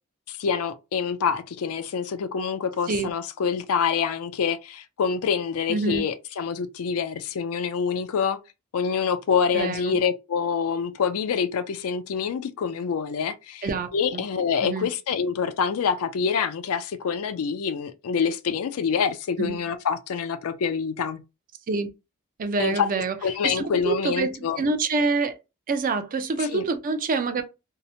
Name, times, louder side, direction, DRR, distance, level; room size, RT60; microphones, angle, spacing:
voice 1, 0.3-8.4 8.7-21.2 22.6-22.9 23.2-24.6 26.4-26.6, left 6 dB, 70° left, 0.4 m, -26 dB
voice 2, 5.7-6.1 9.5-9.9 13.6-14.2 14.6-14.9 19.4-19.6 21.7-21.9 22.4-23.1 23.4-25.4 25.7-27.4, right 4 dB, 40° right, 0.4 m, -26 dB
2.8 x 2.0 x 2.6 m
head